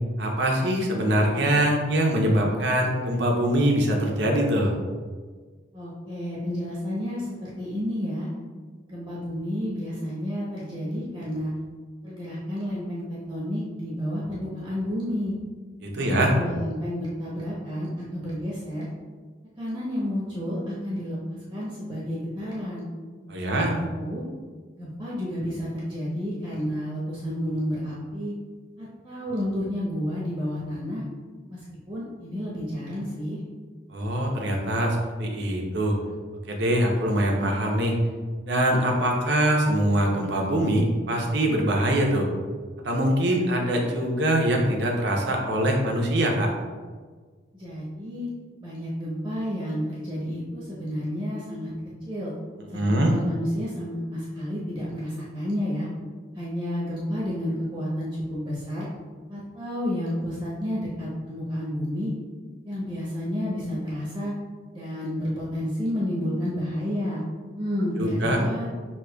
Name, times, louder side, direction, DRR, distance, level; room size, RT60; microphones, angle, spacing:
voice 1, 0.2-4.7 15.8-16.3 23.3-23.7 33.9-36.0 36.5-38.0 38.5-42.3 42.8-46.5 52.7-53.1 68.0-68.4, right 1 dB, 65° right, 0 dB, 0.8 m, -23 dB
voice 2, 5.7-8.3 8.9-11.5 12.0-13.0 13.3-15.4 16.0-18.9 19.6-22.9 23.4-24.2 24.8-28.3 28.8-31.0 31.5-31.6 31.9-33.4 47.5-48.3 48.6-51.7 52.1-52.3 52.7-55.9 56.3-58.9 59.3-62.1 62.6-64.3 64.7-67.2 67.6-68.7, equal, 20° right, -8 dB, 0.9 m, -30 dB
6.4 x 2.9 x 2.3 m, 1.5 s
head